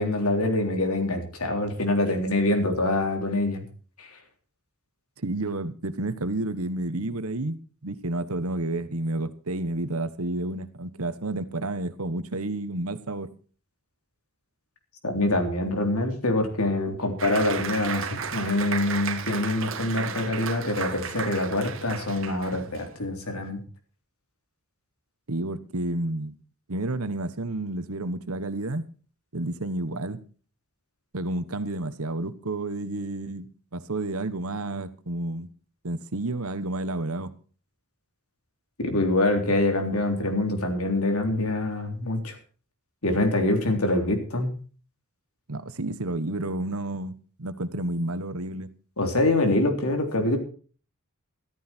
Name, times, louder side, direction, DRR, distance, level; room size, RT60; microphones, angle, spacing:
voice 1, 0.0-3.6 4.0-4.2 15.0-23.6 38.8-42.4 43.0-44.5 49.0-50.4, left 2 dB, 80° left, 5 dB, 3.5 m, -25 dB
voice 2, 5.2-13.3 25.3-26.4 26.7-28.8 29.3-30.2 31.1-35.5 35.8-37.3 45.5-48.7, right 2 dB, 75° right, 12 dB, 1.3 m, -30 dB
Applause, 17.2-22.9, right 6 dB, 60° right, 1.5 m, -34 dB
13.5 x 13.5 x 4.5 m, 0.39 s
head